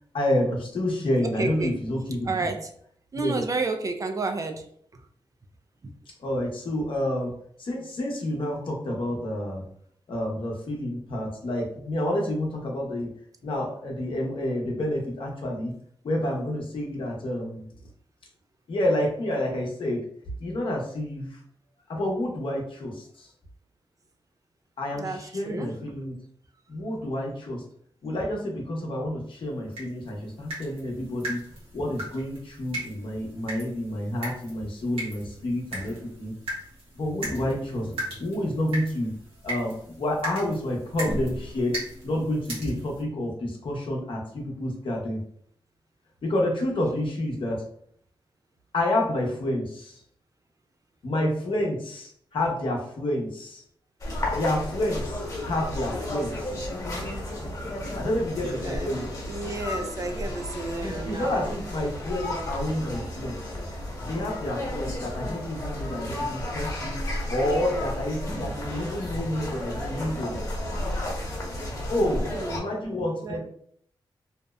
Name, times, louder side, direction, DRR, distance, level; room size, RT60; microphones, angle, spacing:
voice 1, 0.1-2.5 3.1-3.4 6.2-7.3 7.6-9.6 10.1-13.1 13.4-15.7 16.0-17.6 18.7-20.0 20.4-21.4 21.9-23.3 24.8-26.2 26.7-27.6 28.0-31.4 31.7-36.3 36.9-37.9 38.2-39.1 39.4-41.8 42.0-45.2 46.2-47.6 48.7-50.0 51.0-53.6 54.3-56.6 57.9-59.0 60.8-63.5 64.1-70.3 71.9-72.2 72.5-73.4, left 1 dB, 65° left, -1 dB, 0.7 m, -29 dB
voice 2, 1.3-1.8 2.3-2.7 3.1-4.6 4.9-5.0 24.9-25.7 58.6-58.9 59.3-61.6 72.1-72.7 73.2-73.4, right 3 dB, 40° right, 6 dB, 0.3 m, -31 dB
sound 1, 29.7-43.0, right 1 dB, 90° right, 1.0 m, -37 dB
sound 2, 54.0-72.6, left 1 dB, 40° left, 1.1 m, -33 dB
2.7 x 2.0 x 2.3 m, 0.64 s
cardioid pair, 70°, 9 cm